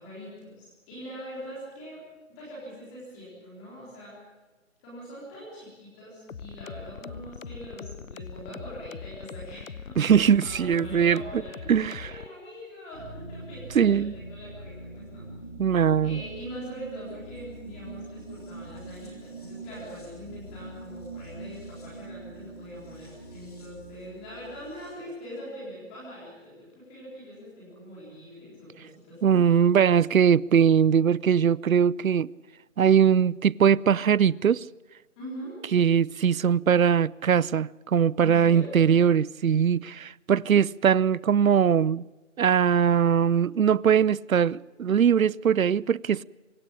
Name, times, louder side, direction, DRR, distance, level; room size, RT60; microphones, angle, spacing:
voice 1, 0.0-2.0 2.3-4.2 4.8-15.2 16.0-29.5 35.2-35.6 38.2-38.8, equal, 5° left, 3.8 m, -43 dB
sound 1, 6.3-12.3, left 6 dB, 80° left, 0.8 m, -41 dB
voice 2, 10.0-11.2 11.7-12.1 13.8-14.1 15.6-16.2 29.2-32.3 32.8-34.6 35.7-42.0 42.4-46.2, right 8 dB, 90° right, 0.6 m, -21 dB
sound 2, 12.9-24.9, right 2 dB, 30° left, 5.2 m, -43 dB
25.0 x 16.0 x 8.7 m
figure-of-eight pair, 180°, 40 cm